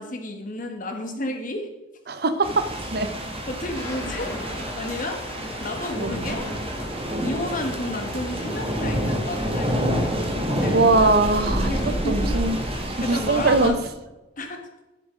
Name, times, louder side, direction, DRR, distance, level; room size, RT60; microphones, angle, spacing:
voice 1, 0.0-1.7 3.5-4.3 4.7-5.2 5.6-6.5 7.2-9.8 10.6-10.9 11.6-12.6 13.0-13.8 14.4-14.6, left 1 dB, 45° left, 4 dB, 1.4 m, -31 dB
voice 2, 2.1-2.7 2.9-3.1 6.0-6.3 10.7-11.8 12.1-12.6 12.9-13.8, right 3 dB, 55° right, 10 dB, 0.7 m, -21 dB
sound 1, 2.4-13.7, equal, 30° right, 1.5 m, -28 dB
Thunder, 3.6-14.1, equal, 15° left, 2.8 m, -38 dB
11.0 x 7.3 x 3.7 m, 1.0 s
head